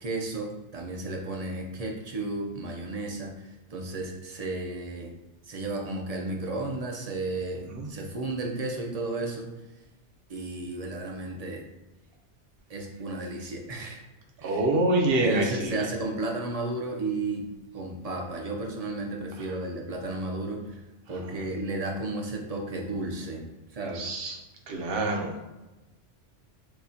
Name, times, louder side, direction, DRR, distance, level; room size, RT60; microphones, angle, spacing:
voice 1, 0.0-5.1 5.5-9.5 10.3-11.6 12.7-14.0 14.4-14.6 15.2-17.5 17.7-20.8 21.1-23.4 23.7-24.1, right 2 dB, 40° right, 1 dB, 0.6 m, -33 dB
voice 2, 14.4-15.8 21.3-21.4 23.9-24.4 24.7-25.4, right 2 dB, 60° right, 0 dB, 0.9 m, -26 dB
6.9 x 2.3 x 2.7 m, 1.1 s
omnidirectional pair, 1.2 m